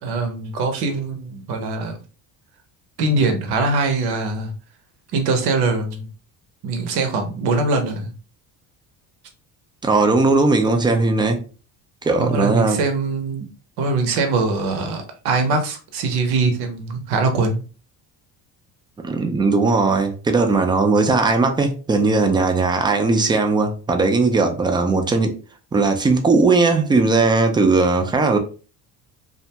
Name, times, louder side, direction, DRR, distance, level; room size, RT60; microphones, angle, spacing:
voice 1, 0.0-2.0 3.0-4.5 5.1-6.1 6.6-8.1 12.2-13.5 13.8-17.6, right 3 dB, 65° right, 0.8 m, -22 dB
voice 2, 9.8-11.4 12.0-12.8 19.0-25.3 25.7-28.4, right 3 dB, 10° right, 0.3 m, -18 dB
2.6 x 2.2 x 2.8 m
cardioid pair, 110°, 41 cm